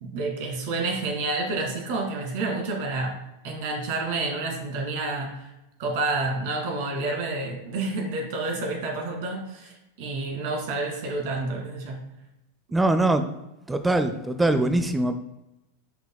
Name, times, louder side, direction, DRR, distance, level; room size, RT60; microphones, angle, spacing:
voice 1, 0.0-3.1 3.4-5.5 5.8-9.7 10.0-12.0, right 3 dB, 50° right, 1 dB, 2.0 m, -29 dB
voice 2, 12.7-13.2 13.7-15.2, right 2 dB, 10° right, 9 dB, 0.5 m, -22 dB
10.0 x 5.7 x 2.2 m, 0.94 s
figure-of-eight pair, 90°, 0 cm